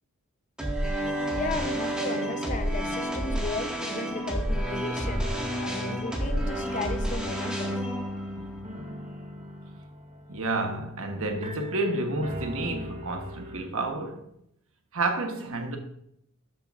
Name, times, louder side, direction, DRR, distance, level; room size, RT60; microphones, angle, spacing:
sound 1, 0.6-9.7, equal, 5° right, 1.9 m, -30 dB
voice 1, 1.3-7.8, left 3 dB, 35° left, 0.8 m, -35 dB
sound 2, 1.5-4.7 5.0-13.6, equal, 30° right, 1.1 m, -43 dB
voice 2, 10.3-14.3 14.9-15.8, right 2 dB, 65° right, 1.2 m, -30 dB
12.5 x 7.5 x 2.5 m
head